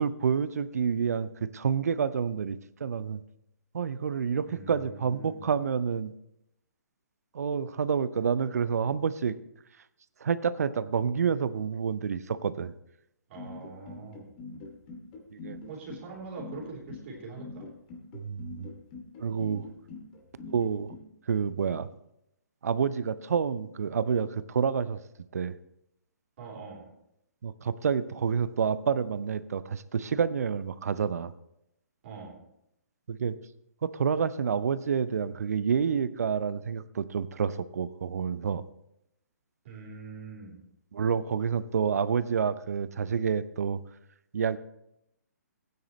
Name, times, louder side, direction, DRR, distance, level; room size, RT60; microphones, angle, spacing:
voice 1, 0.0-3.2 3.7-6.1 7.3-9.4 10.2-12.7 15.3-15.6 18.1-18.7 19.2-19.7 20.5-20.9 21.3-21.9 22.6-25.0 25.3-25.6 27.4-31.3 33.1-33.4 33.8-38.6 40.9-43.8 44.3-44.6, right 6 dB, 60° right, 16 dB, 0.6 m, -28 dB
voice 2, 4.4-5.5 13.3-14.3 15.7-17.7 26.4-26.9 32.0-32.4 39.6-40.6, right 4 dB, 45° right, -3 dB, 3.6 m, -43 dB
sound 1, 13.4-21.0, left 3 dB, 35° left, 2.3 m, -43 dB
16.0 x 9.6 x 3.1 m, 0.80 s
figure-of-eight pair, 130°, 9 cm